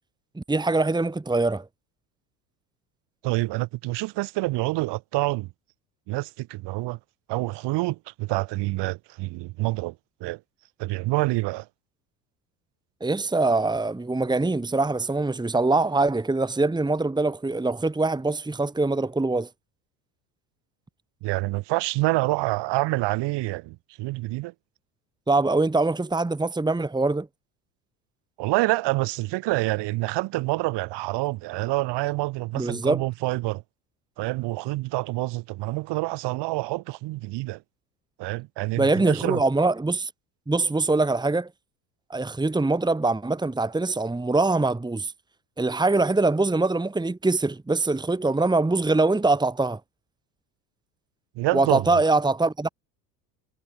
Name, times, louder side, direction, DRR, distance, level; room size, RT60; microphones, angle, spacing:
voice 1, 0.4-1.7 13.0-19.5 25.3-27.3 32.5-33.0 38.8-40.1 40.5-41.5 42.1-45.1 45.6-49.8 51.5-52.7, right 3 dB, 10° right, 2.2 m, -23 dB
voice 2, 3.2-5.5 6.1-7.0 7.3-9.9 10.2-10.4 10.8-11.7 21.2-24.5 28.4-33.6 34.2-37.6 38.2-39.4 51.4-51.9, right 20 dB, 55° right, 4.2 m, -27 dB
figure-of-eight pair, 70°, 49 cm